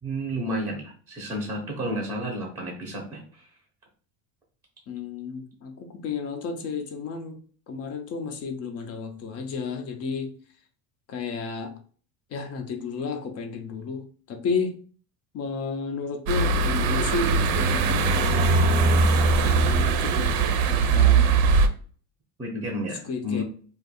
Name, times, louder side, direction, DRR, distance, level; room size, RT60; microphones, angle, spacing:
voice 1, 0.0-3.5 22.4-23.4, equal, 5° right, 0.6 m, -31 dB
voice 2, 4.9-7.4 7.7-10.3 11.1-11.8 12.3-14.8 15.3-19.0 19.4-20.4 20.7-21.3 23.0-23.4, left 5 dB, 35° left, 0.5 m, -32 dB
sound 1, 16.3-21.7, right 4 dB, 75° right, 0.7 m, -21 dB
2.6 x 2.4 x 4.1 m
cardioid pair, 150°, 47 cm